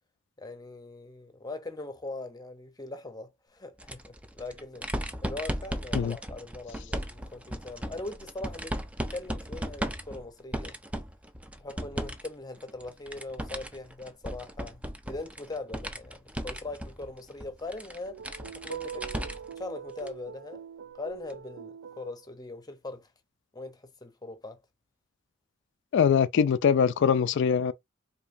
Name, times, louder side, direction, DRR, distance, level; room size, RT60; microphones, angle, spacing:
voice 1, 0.4-4.9 5.2-8.8 9.1-10.8 11.6-18.2 18.5-20.7 21.0-23.1 23.5-24.6, left 2 dB, 20° left, 0.7 m, -41 dB
sound 1, 3.8-12.3 12.6-19.6 20.0-20.1 21.3-21.4, right 1 dB, 5° right, 0.4 m, -36 dB
sound 2, 18.0-22.2, right 8 dB, 85° right, 0.4 m, -43 dB
voice 2, 25.9-27.7, left 7 dB, 60° left, 0.3 m, -23 dB
5.0 x 2.7 x 2.6 m
head